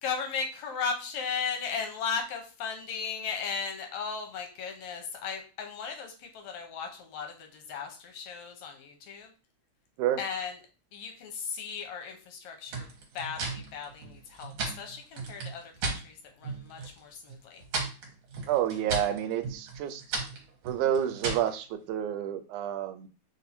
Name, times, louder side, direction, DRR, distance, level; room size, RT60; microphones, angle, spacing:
voice 1, 0.0-9.3 10.2-10.6 10.9-12.9 13.1-17.6, left 6 dB, 75° left, 3 dB, 2.0 m, -36 dB
sound 1, 12.7-16.0 16.4-17.0 17.3-21.5, right 3 dB, 65° right, 2.2 m, -36 dB
voice 2, 18.5-20.2 20.6-23.1, right 10 dB, 85° right, 10 dB, 2.0 m, -29 dB
4.6 x 2.7 x 4.1 m, 0.35 s
omnidirectional pair, 3.4 m